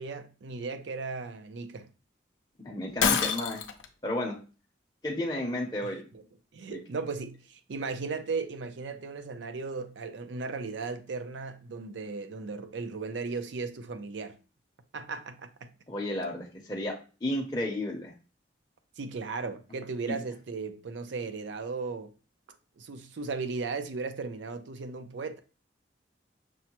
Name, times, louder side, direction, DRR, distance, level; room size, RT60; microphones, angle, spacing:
voice 1, 0.0-1.9 5.8-5.9 6.5-14.4 14.9-15.7 19.0-22.1 22.8-25.4, right 4 dB, 75° right, 0.5 m, -36 dB
voice 2, 2.6-3.6 4.0-4.4 5.0-6.0 6.7-6.8 15.9-16.9 17.2-18.1 20.1-20.2, left 1 dB, 20° left, 0.6 m, -32 dB
Shatter, 3.0-3.9, left 6 dB, 90° left, 0.5 m, -26 dB
6.1 x 2.1 x 2.9 m
head